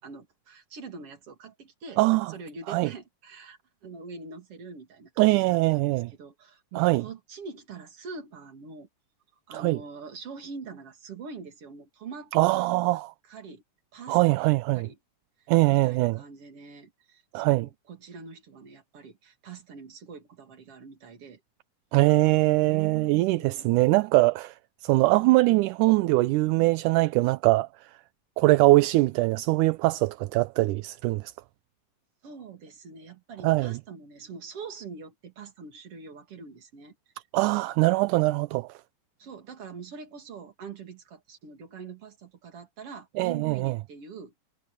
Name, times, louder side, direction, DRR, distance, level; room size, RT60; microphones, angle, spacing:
voice 1, 0.0-2.0 2.3-8.9 9.5-13.0 13.3-13.6 13.9-15.0 15.4-21.4 22.7-23.7 25.2-25.9 32.2-37.0 37.8-37.9 39.2-44.3, right 5 dB, 45° right, 3.4 m, -44 dB
voice 2, 2.0-2.3 2.7-2.9 5.2-6.1 6.8-7.0 9.5-9.8 12.3-13.1 14.1-14.9 15.5-16.2 17.3-17.7 21.9-24.6 24.8-27.9 28.4-31.3 33.4-33.8 37.3-38.8 43.2-43.8, right 20 dB, 80° right, 2.0 m, -22 dB
omnidirectional pair, 3.7 m